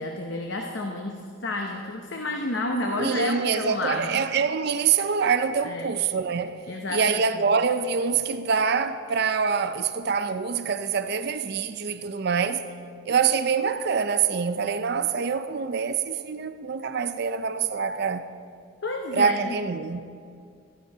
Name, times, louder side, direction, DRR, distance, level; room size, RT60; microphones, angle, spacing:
voice 1, 0.0-4.2 5.6-5.9 6.7-7.2 18.8-19.4, left 2 dB, 60° left, 0.8 m, -30 dB
voice 2, 3.0-6.6 6.9-12.6 13.1-18.2 19.1-20.0, right 6 dB, 50° right, 0.5 m, -25 dB
13.5 x 9.4 x 5.5 m
head